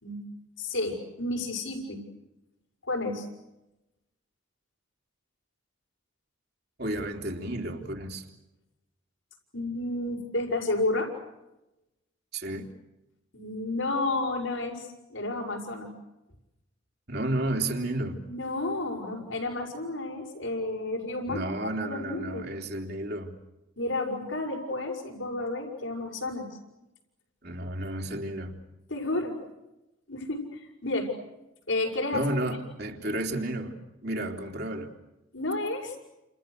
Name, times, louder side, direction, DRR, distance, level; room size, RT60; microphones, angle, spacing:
voice 1, 0.6-2.0 2.8-3.3 9.5-11.1 13.3-15.9 18.3-22.5 23.8-26.5 28.9-29.4 30.1-31.1 31.7-32.3 35.3-36.0, left 2 dB, 80° left, -1 dB, 6.4 m, -31 dB
voice 2, 6.8-8.3 12.3-12.7 17.1-18.2 21.3-23.3 27.4-28.6 32.1-34.9, right 1 dB, 50° right, 3 dB, 3.5 m, -32 dB
30.0 x 29.0 x 6.6 m, 0.96 s
head